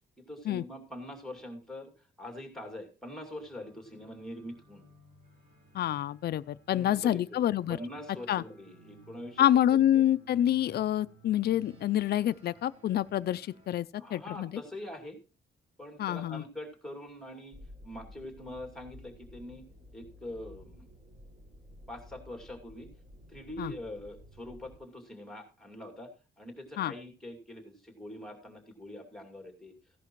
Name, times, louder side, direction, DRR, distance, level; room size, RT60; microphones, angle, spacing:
voice 1, 0.2-4.8 6.7-9.5 9.9-10.0 14.0-15.2 15.8-17.6 17.8-19.6 19.9-20.9 21.9-22.9 23.3-29.7, left 1 dB, ahead, 2.5 m, -44 dB
sound 1, 3.4-13.8, right 4 dB, 50° right, 4.2 m, -59 dB
voice 2, 5.7-7.8 8.3-8.4 9.4-14.5 16.0-16.4 23.6-23.7 26.8-26.9, left 11 dB, 55° left, 0.5 m, -27 dB
sound 2, 17.5-24.8, left 1 dB, 35° right, 5.6 m, -53 dB
15.5 x 11.0 x 3.1 m
cardioid pair, 130°, 19 cm